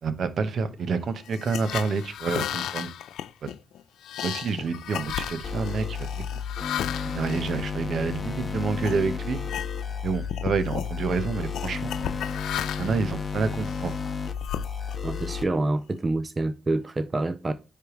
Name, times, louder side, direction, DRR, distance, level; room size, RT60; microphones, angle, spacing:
voice 1, 0.0-2.9 4.2-6.1 7.0-9.4 10.0-12.1 12.8-14.0, right 5 dB, 65° right, 0.9 m, -28 dB
sound 1, 1.2-8.3 8.8-9.0 9.4-10.0 10.3-10.9 11.5-13.1 13.6-15.2, left 10 dB, 85° left, 0.3 m, -34 dB
sound 2, 5.4-15.4, left 6 dB, 40° left, 0.7 m, -32 dB
voice 2, 15.0-17.5, right 2 dB, 25° right, 0.5 m, -27 dB
9.6 x 3.4 x 3.1 m
cardioid pair, 85°, 0 cm